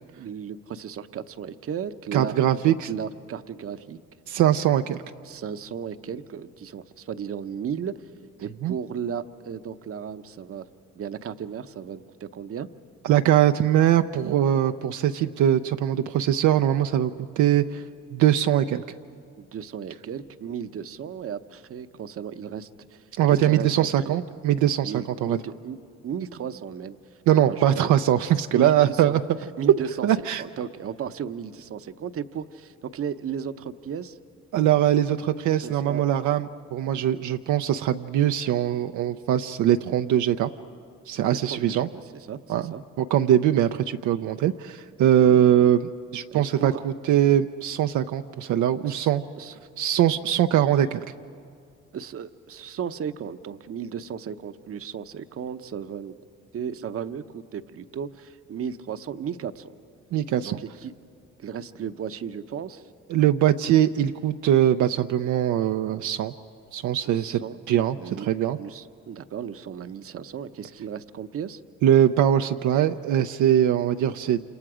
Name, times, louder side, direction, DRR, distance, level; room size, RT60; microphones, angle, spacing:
voice 1, 0.2-2.4 2.6-4.0 5.2-7.9 8.4-10.7 11.0-12.7 19.4-24.2 24.8-27.0 27.3-27.9 28.5-34.2 35.6-36.0 41.3-42.8 45.2-45.4 46.3-46.8 48.8-49.5 51.9-56.1 56.5-59.7 60.4-60.9 61.4-62.9 67.1-67.6 68.0-68.3 68.6-71.6, right 8 dB, 50° right, 10 dB, 0.8 m, -35 dB
voice 2, 2.1-2.9 4.3-5.0 8.6-8.7 13.0-17.1 17.4-17.8 18.1-18.8 23.2-24.9 25.2-25.4 27.3-29.2 30.0-30.4 34.5-40.5 41.1-41.9 42.5-49.2 49.8-51.0 60.1-60.6 63.1-66.3 66.7-67.4 67.7-68.6 71.8-74.4, right 11 dB, 75° right, 7 dB, 0.6 m, -22 dB
28.0 x 27.0 x 5.0 m, 2.3 s
cardioid pair, 90°, 30 cm